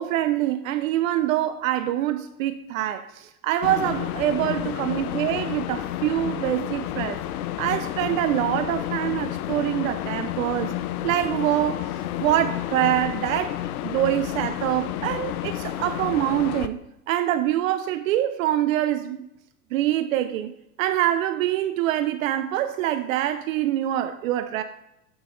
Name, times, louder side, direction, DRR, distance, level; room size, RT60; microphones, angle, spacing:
voice 1, 0.0-7.2 7.6-10.7 11.0-11.8 12.2-13.6 13.8-16.8 17.1-19.3 19.7-24.6, right 12 dB, 60° right, 0.5 m, -25 dB
sound 1, 3.6-16.7, left 13 dB, 70° left, 0.5 m, -30 dB
7.8 x 4.0 x 3.8 m
hypercardioid pair, 120°, 46 cm